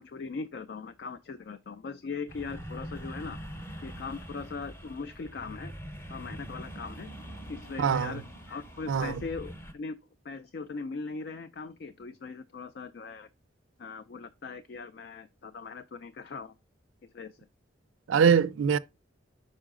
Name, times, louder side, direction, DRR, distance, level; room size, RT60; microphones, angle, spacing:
voice 1, 0.0-3.4 3.8-5.7 6.1-7.1 7.5-10.0 10.2-13.3 13.8-16.5 17.0-17.5, left 4 dB, 55° left, 0.3 m, -40 dB
sound 1, 2.3-9.7, equal, 10° left, 0.7 m, -43 dB
voice 2, 7.8-8.2 8.9-9.1 18.1-18.8, right 7 dB, 80° right, 0.4 m, -23 dB
5.6 x 4.9 x 3.6 m
head